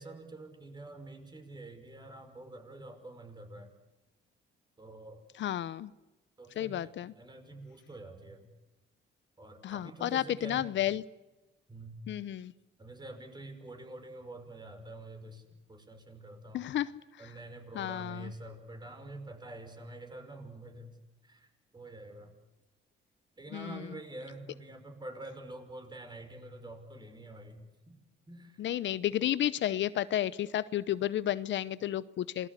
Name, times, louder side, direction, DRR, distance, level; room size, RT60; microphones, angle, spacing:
voice 1, 0.0-3.7 4.8-5.2 6.4-8.5 9.4-10.7 11.7-11.9 12.8-15.4 15.7-16.7 17.2-20.9 21.2-22.3 23.4-28.0 28.3-28.6, right 2 dB, 20° right, 6 dB, 5.8 m, -47 dB
voice 2, 5.4-5.9 6.6-7.1 9.6-11.0 12.1-12.5 16.5-17.0 17.7-18.3 23.5-23.9 28.6-32.5, left 12 dB, 70° left, 16 dB, 0.8 m, -32 dB
28.0 x 20.5 x 8.3 m, 1.0 s
cardioid pair, 90°, 20 cm